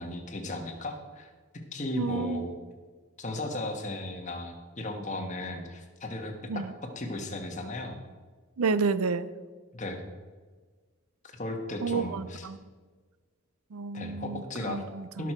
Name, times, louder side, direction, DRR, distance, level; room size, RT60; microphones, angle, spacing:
voice 1, 0.0-1.3 1.7-2.6 3.2-8.0 9.7-10.1 11.4-12.5 13.9-14.8 15.2-15.3, left 1 dB, 35° left, 3 dB, 1.4 m, -36 dB
voice 2, 2.0-2.5 6.5-6.7 8.6-9.3 11.8-12.6 13.7-15.2, right 4 dB, 80° right, 15 dB, 0.5 m, -30 dB
17.0 x 6.2 x 4.4 m, 1.4 s
head